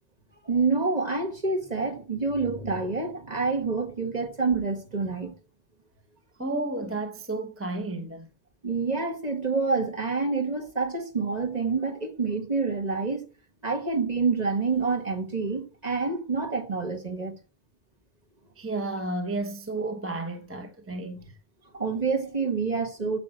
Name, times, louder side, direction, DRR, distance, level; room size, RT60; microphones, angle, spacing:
voice 1, 0.4-5.4 8.6-13.3 13.6-17.3 21.7-23.2, right 4 dB, 40° right, 1.8 m, -27 dB
voice 2, 6.4-8.3 18.6-21.2, right 2 dB, 15° right, 1.0 m, -32 dB
9.6 x 7.9 x 8.9 m
omnidirectional pair, 1.1 m